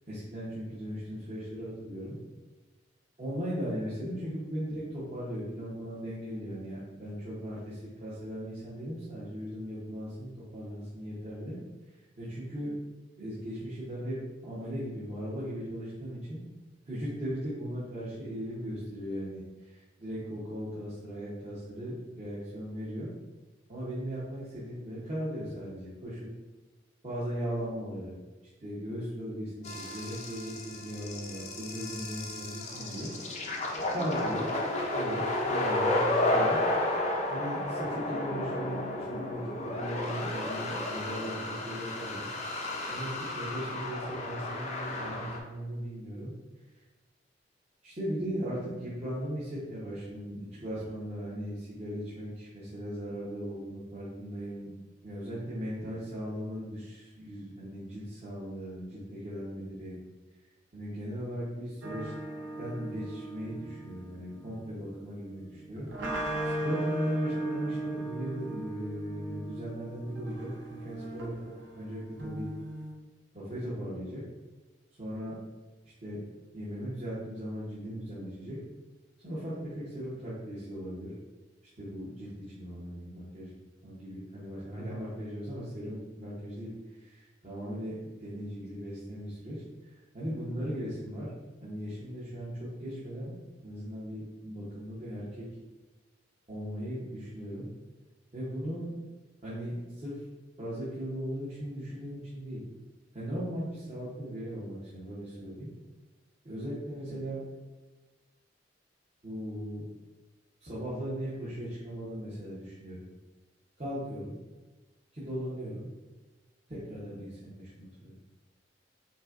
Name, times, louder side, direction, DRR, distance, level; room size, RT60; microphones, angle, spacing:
voice 1, 0.1-2.2 3.2-11.6 12.2-12.7 13.2-14.2 14.4-16.4 16.9-23.1 23.7-26.3 27.0-28.1 28.6-33.1 33.9-34.5 34.9-42.3 42.9-46.3 47.8-54.7 55.0-60.0 60.7-62.1 62.6-72.5 73.3-74.2 75.0-75.3 75.8-76.2 76.5-78.6 79.2-81.1 81.8-83.5 83.8-91.3 91.6-95.5 96.5-97.7 98.3-98.9 99.4-100.2 100.6-102.6 103.1-105.7 106.4-107.4 109.2-109.9 110.6-113.1 113.8-114.4 115.1-115.9 116.7-118.2, equal, 35° right, -11 dB, 0.9 m, -38 dB
sound 1, 29.6-45.4, left 1 dB, 40° left, 0.5 m, -32 dB
sound 2, 61.8-72.9, right 1 dB, 80° right, 0.6 m, -38 dB
5.2 x 2.2 x 2.5 m, 1.2 s
head